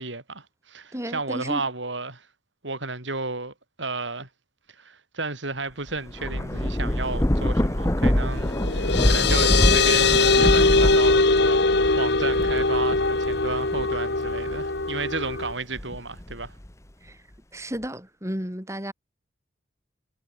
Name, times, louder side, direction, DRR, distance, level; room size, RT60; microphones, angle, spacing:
voice 1, 0.0-2.3 2.6-4.3 4.8-11.6 12.0-16.6, right 3 dB, 75° right, 6.0 m, -33 dB
voice 2, 0.9-1.6 17.0-17.2 17.5-18.9, equal, 15° right, 7.5 m, -32 dB
Thunder / Rain, 5.9-14.8 15.3-16.7, left 1 dB, 15° left, 1.1 m, -25 dB
sound 1, 8.4-15.5, left 3 dB, 60° left, 2.2 m, -21 dB
head